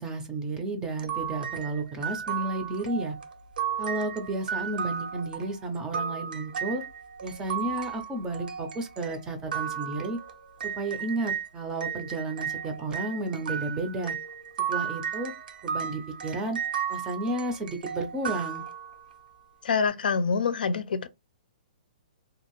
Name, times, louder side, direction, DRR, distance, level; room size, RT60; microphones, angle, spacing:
voice 1, 0.0-3.2 3.8-6.8 7.2-10.2 10.6-14.1 14.7-15.3 15.6-16.6 16.9-18.6, right 2 dB, 10° right, 0.5 m, -32 dB
sound 1, 1.0-11.5 11.8-19.2, right 7 dB, 80° right, 0.6 m, -34 dB
voice 2, 19.6-21.1, left 5 dB, 90° left, 0.5 m, -26 dB
2.6 x 2.4 x 3.0 m
hypercardioid pair, 160°, 5 cm